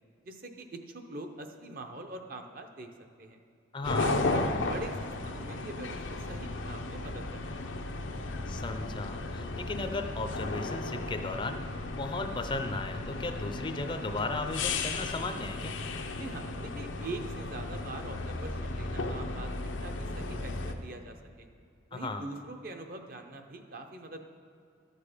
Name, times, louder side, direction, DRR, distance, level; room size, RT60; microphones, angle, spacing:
voice 1, 0.2-2.9 3.2-3.4 4.0-7.7 16.1-21.5 21.9-24.3, right 2 dB, 50° right, 5 dB, 0.8 m, -43 dB
voice 2, 3.7-4.1 8.5-11.6 11.9-15.7 21.9-22.2, left 2 dB, 25° left, 7 dB, 0.5 m, -35 dB
sound 1, 3.8-20.7, left 2 dB, 90° left, 0.7 m, -35 dB
12.0 x 6.6 x 5.0 m, 2.4 s
head